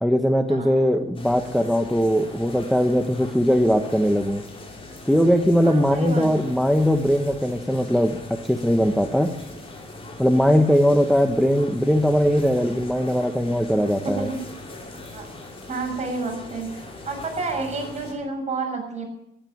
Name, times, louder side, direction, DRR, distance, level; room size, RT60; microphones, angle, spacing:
voice 1, 0.0-4.4 5.1-8.2 8.4-9.3 10.2-14.3, equal, ahead, 5 dB, 1.1 m, -20 dB
sound 1, 1.1-18.1, left 2 dB, 30° left, 5.4 m, -40 dB
voice 2, 5.6-6.4 14.0-14.4 15.1-15.3 15.7-19.0, right 3 dB, 35° right, 1 dB, 6.6 m, -30 dB
14.0 x 10.0 x 8.6 m, 0.83 s
cardioid pair, 90°, 20 cm